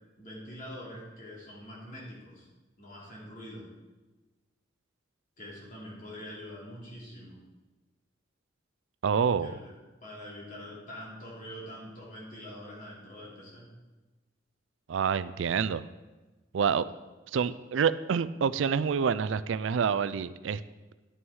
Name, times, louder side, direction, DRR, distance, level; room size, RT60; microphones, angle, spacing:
voice 1, 0.2-2.5 2.8-3.7 5.4-7.4 9.2-9.7 10.0-13.7, equal, 45° left, -5 dB, 2.8 m, -44 dB
voice 2, 9.0-9.5 14.9-15.8 16.5-16.9 17.3-20.6, right 6 dB, 75° right, 15 dB, 0.4 m, -27 dB
11.0 x 6.2 x 4.7 m, 1.2 s
head